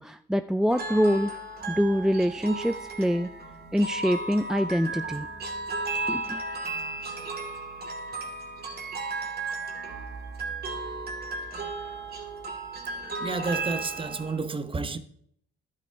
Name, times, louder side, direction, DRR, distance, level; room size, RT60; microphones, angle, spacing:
voice 1, 0.0-1.3 1.7-3.3 3.7-5.3 6.1-6.4, equal, ahead, 0.4 m, -25 dB
sound 1, 0.7-14.4, right 3 dB, 50° right, 2.6 m, -35 dB
voice 2, 13.2-15.0, right 3 dB, 25° right, 1.0 m, -30 dB
12.0 x 8.2 x 4.6 m
cardioid pair, 90°, 20 cm